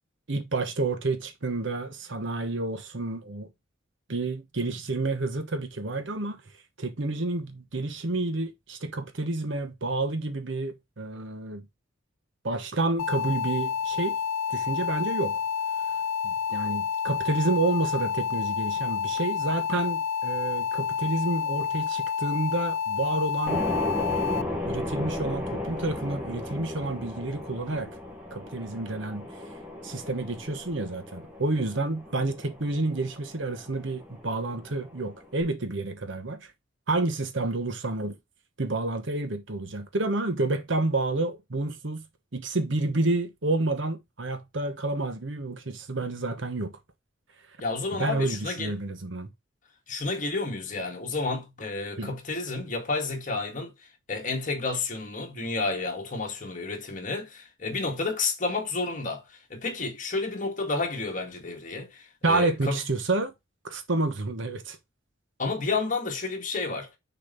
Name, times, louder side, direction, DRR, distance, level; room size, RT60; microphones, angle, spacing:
voice 1, 0.3-3.5 4.1-6.4 6.8-11.7 12.4-14.2 14.5-15.4 16.2-23.7 24.6-27.9 28.3-29.3 29.8-36.5 36.9-38.2 38.6-42.0 42.3-46.7 48.0-49.3 52.0-52.1 62.2-63.3 63.6-64.8, right 2 dB, 65° right, 1.1 m, -29 dB
sound 1, 13.0-24.4, left 7 dB, 85° left, 0.4 m, -29 dB
sound 2, 23.5-35.4, left 1 dB, 5° right, 1.6 m, -35 dB
voice 2, 47.6-48.7 49.9-53.7 54.1-62.8 65.4-66.9, left 3 dB, 40° left, 2.0 m, -31 dB
6.7 x 4.2 x 3.9 m
head